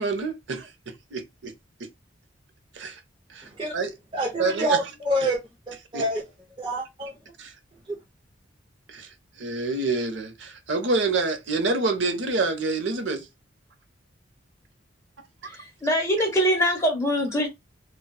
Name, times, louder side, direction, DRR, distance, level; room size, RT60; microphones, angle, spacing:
voice 1, 0.0-1.5 2.7-3.0 3.3-3.9 4.4-4.8 5.9-6.0 7.4-7.5 8.9-9.1 9.4-13.3, right 3 dB, 65° right, 0.7 m, -27 dB
voice 2, 3.4-3.7 4.1-5.4 5.7-6.2 6.6-7.2 7.9-8.0, right 1 dB, 25° right, 0.7 m, -27 dB
voice 3, 15.4-17.5, equal, 15° left, 1.0 m, -23 dB
3.9 x 2.2 x 2.3 m
head